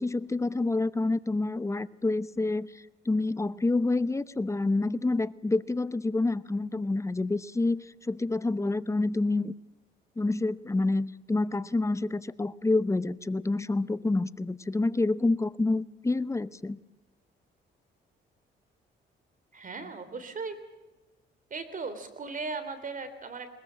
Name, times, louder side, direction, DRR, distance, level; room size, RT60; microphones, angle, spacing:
voice 1, 0.0-2.7 3.1-9.5 10.2-16.8, left 2 dB, 15° left, 17 dB, 0.7 m, -28 dB
voice 2, 19.5-20.6 21.5-23.5, right 4 dB, 40° right, 11 dB, 3.4 m, -37 dB
21.0 x 20.5 x 7.6 m, 1.1 s
cardioid pair, 90°, 20 cm